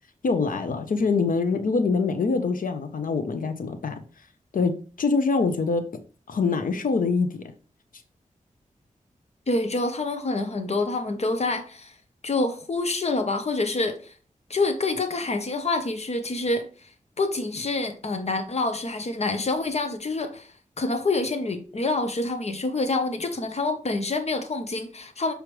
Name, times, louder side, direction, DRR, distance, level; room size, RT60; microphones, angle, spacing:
voice 1, 0.2-4.0 4.5-4.7 5.0-5.8 6.3-7.4, left 4 dB, 80° left, 0.9 m, -24 dB
voice 2, 9.5-11.9 12.2-14.1 14.5-16.7 17.2-20.5 20.8-25.3, left 3 dB, 50° left, 1.0 m, -27 dB
6.2 x 4.8 x 3.3 m
wide cardioid pair, 95°, 14 cm